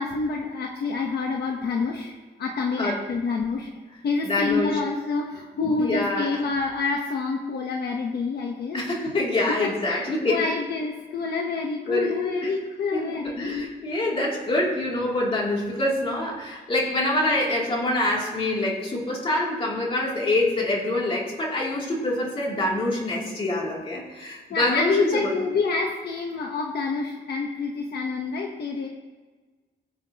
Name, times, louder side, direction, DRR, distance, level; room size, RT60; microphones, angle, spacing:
voice 1, 0.0-2.1 2.4-3.7 4.0-8.8 9.5-13.7 24.5-28.9, left 4 dB, 65° left, 1 dB, 1.1 m, -27 dB
voice 2, 4.2-4.8 5.8-6.4 8.7-10.5 11.9-12.1 12.4-12.5 12.9-13.1 13.4-25.3, left 1 dB, 30° left, -3 dB, 2.9 m, -25 dB
21.0 x 7.5 x 2.9 m, 1.3 s
wide cardioid pair, 175°, 18 cm